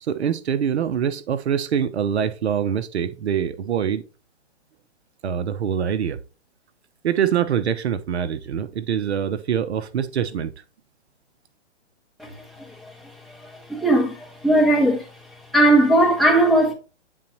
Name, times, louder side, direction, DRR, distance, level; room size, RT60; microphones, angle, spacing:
voice 1, 0.0-4.0 5.2-6.2 7.0-10.5, right 8 dB, 65° right, 0.8 m, -24 dB
voice 2, 13.7-15.0 15.5-16.7, right 1 dB, ahead, 1.5 m, -17 dB
9.3 x 4.0 x 3.0 m
hypercardioid pair, 155°, 35 cm